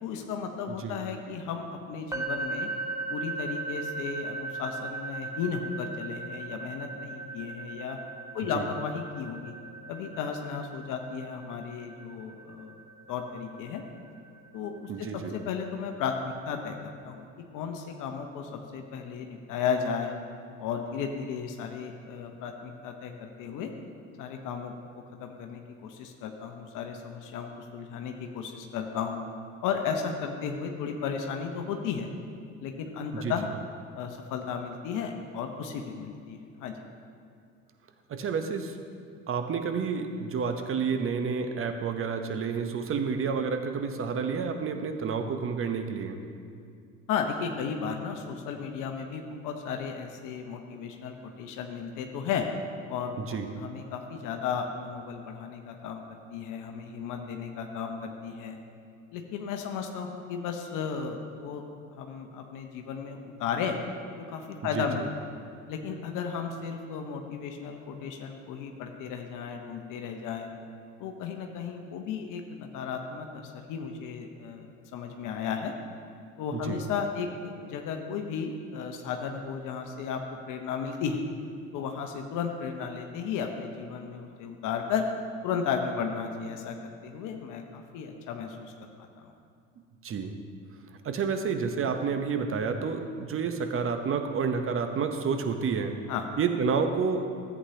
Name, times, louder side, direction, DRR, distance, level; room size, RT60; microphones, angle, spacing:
voice 1, 0.0-2.7 3.1-8.0 8.3-9.5 9.9-12.8 13.1-13.8 14.5-14.9 15.3-17.2 17.5-20.1 20.6-23.7 24.2-29.2 29.6-32.1 32.6-33.5 33.9-36.7 47.1-52.5 52.9-56.0 56.3-58.6 59.1-61.6 62.0-63.8 64.2-65.0 65.7-70.5 71.0-75.7 76.4-80.2 80.5-81.2 81.7-85.1 85.4-89.3 96.1-96.3, left 6 dB, 55° left, 4 dB, 1.0 m, -34 dB
voice 2, 0.7-1.0 8.5-8.6 14.9-15.4 33.1-33.3 38.1-38.8 39.3-46.2 53.2-53.5 64.7-64.9 76.5-76.8 90.0-90.3 91.0-96.0 96.4-97.3, right 5 dB, 35° right, 7 dB, 1.0 m, -29 dB
sound 1, 2.1-16.0, right 3 dB, 10° right, 1.1 m, -39 dB
14.0 x 8.4 x 2.9 m, 2.4 s
hypercardioid pair, 65°, 38 cm